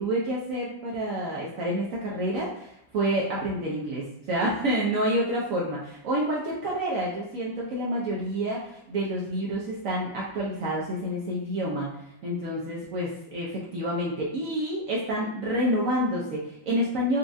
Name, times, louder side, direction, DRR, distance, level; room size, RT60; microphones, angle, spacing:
voice 1, 0.0-11.9 12.2-17.2, right 1 dB, 70° right, -4 dB, 0.7 m, -28 dB
4.1 x 2.3 x 2.6 m, 0.78 s
omnidirectional pair, 2.1 m